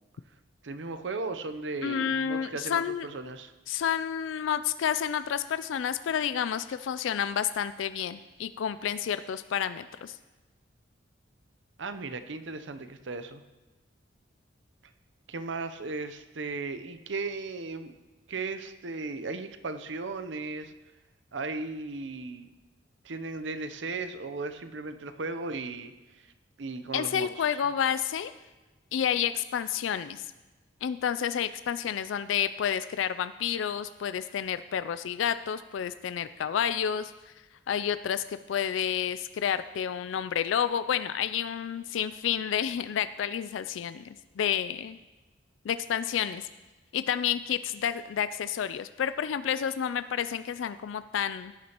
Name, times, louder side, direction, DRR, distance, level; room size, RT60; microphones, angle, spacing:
voice 1, 0.6-3.5 11.8-13.4 15.3-18.0 18.3-20.7 21.3-22.5 23.0-25.9 26.6-27.5, right 3 dB, 70° right, 10 dB, 0.7 m, -36 dB
voice 2, 1.8-3.1 3.7-10.2 26.9-28.3 28.9-30.2 30.8-37.1 37.7-45.0 45.6-46.5 46.9-51.5, left 8 dB, 85° left, 13 dB, 0.3 m, -30 dB
16.5 x 9.5 x 3.0 m, 1.2 s
head